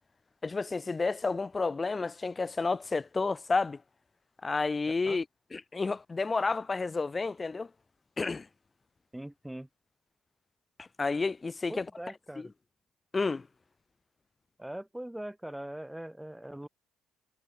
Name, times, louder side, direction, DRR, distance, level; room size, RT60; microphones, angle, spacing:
voice 1, 0.4-3.8 4.4-5.2 5.5-7.7 8.2-8.5 10.8-11.8 12.4-12.5 13.1-13.5, left 4 dB, 25° left, 1.2 m, -30 dB
voice 2, 9.1-9.7 11.7-12.5 14.6-16.7, right 1 dB, 5° right, 6.6 m, -41 dB
supercardioid pair, 75°, 0 cm